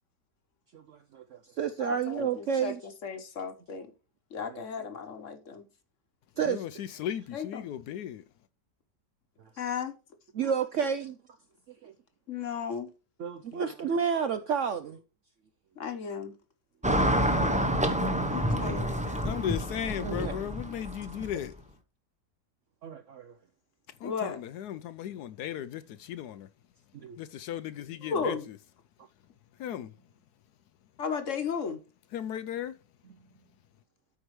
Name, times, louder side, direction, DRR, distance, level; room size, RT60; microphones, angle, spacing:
voice 1, 0.7-2.8 4.5-4.6 6.4-6.8 10.4-11.1 11.8-11.9 13.2-15.0 20.0-20.5 22.8-23.3 26.9-27.2, right 7 dB, 70° right, 0.7 m, -31 dB
voice 2, 1.8-3.9 4.3-5.7 7.3-7.7 9.6-9.9 12.3-12.9 13.5-13.6 15.8-16.3 18.3-19.2 24.0-24.4 28.0-28.4 31.0-31.8, left 6 dB, 50° left, 1.3 m, -35 dB
voice 3, 6.4-8.2 19.2-21.5 24.0-26.5 27.2-28.4 29.6-29.9 32.1-32.7, left 10 dB, 75° left, 1.0 m, -36 dB
Car passing by / Traffic noise roadway noise, 16.8-21.5, equal, 5° right, 0.5 m, -28 dB
13.0 x 4.8 x 3.1 m
omnidirectional pair, 1.9 m